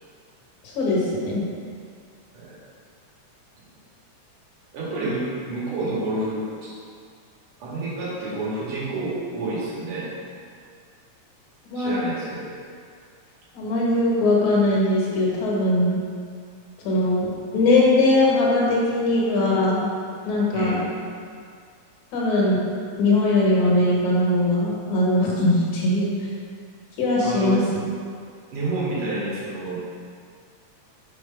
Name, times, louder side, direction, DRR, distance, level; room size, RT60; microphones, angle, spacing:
voice 1, 0.6-1.4 11.7-11.9 13.5-16.0 16.8-19.9 20.3-20.8 22.1-22.6 23.0-26.1 27.0-27.6, left 2 dB, 70° left, -5 dB, 2.6 m, -20 dB
voice 2, 4.7-6.7 7.6-10.1 11.7-12.5 20.5-20.8 27.2-27.6 28.5-29.9, right 2 dB, 80° right, -8 dB, 3.4 m, -29 dB
6.5 x 4.5 x 5.3 m, 2.2 s
omnidirectional pair, 3.6 m